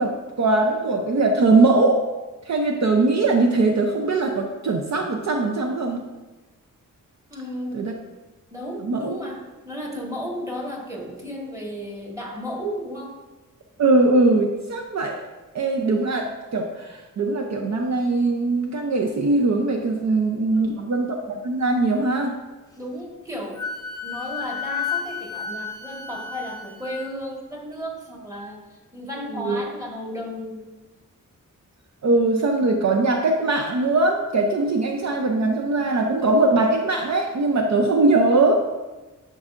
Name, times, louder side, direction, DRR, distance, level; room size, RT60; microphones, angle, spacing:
voice 1, 0.0-2.0 2.5-6.0 7.7-7.9 8.8-9.1 13.8-15.2 15.5-22.4 29.4-29.6 32.0-38.5, right 2 dB, 60° right, 3 dB, 0.6 m, -21 dB
voice 2, 7.3-7.8 8.5-13.2 20.5-20.9 22.8-23.6 24.0-30.7, equal, 10° right, -2 dB, 1.6 m, -34 dB
Wind instrument woodwind instrument, 23.6-27.0, left 6 dB, 10° left, 0.7 m, -31 dB
10.5 x 5.4 x 2.5 m, 1.2 s
wide cardioid pair, 115°, 32 cm